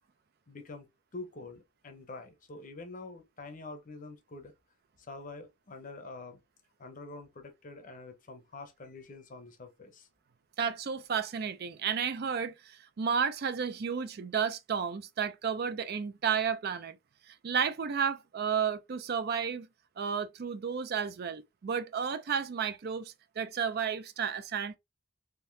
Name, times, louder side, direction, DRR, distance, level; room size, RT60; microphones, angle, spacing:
voice 1, 0.5-0.9 1.1-4.5 5.0-6.4 6.8-10.1, left 3 dB, 40° left, 0.7 m, -46 dB
voice 2, 10.6-17.0 17.3-19.7 20.0-24.8, right 7 dB, 50° right, 0.4 m, -32 dB
3.7 x 2.7 x 2.6 m
head